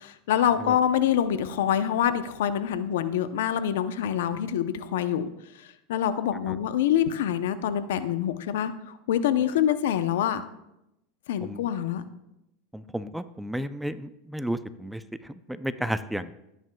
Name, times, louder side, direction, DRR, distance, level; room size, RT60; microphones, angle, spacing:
voice 1, 0.0-5.3 5.6-10.4 11.3-12.0, left 10 dB, 80° left, 11 dB, 0.7 m, -26 dB
voice 2, 12.7-16.3, equal, 5° right, 13 dB, 0.4 m, -33 dB
15.5 x 9.2 x 2.3 m, 0.87 s
supercardioid pair, 125°, 0 cm